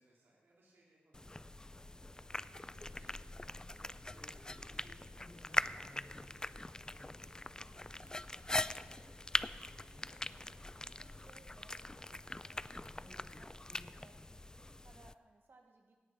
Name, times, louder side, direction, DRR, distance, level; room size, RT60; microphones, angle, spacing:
voice 1, 0.0-1.4 2.1-2.2 2.6-3.2 4.1-10.3, right 2 dB, 90° right, -5 dB, 2.8 m, -68 dB
sound 1, 1.1-15.1, left 2 dB, 20° left, 0.3 m, -42 dB
sound 2, 1.5-13.4, left 2 dB, 90° left, 2.9 m, -65 dB
voice 2, 8.5-9.1 11.0-11.8 12.4-14.2 14.5-16.0, right 3 dB, 70° right, 3 dB, 1.3 m, -65 dB
17.0 x 6.6 x 5.9 m, 1.4 s
cardioid pair, 55°, 4 cm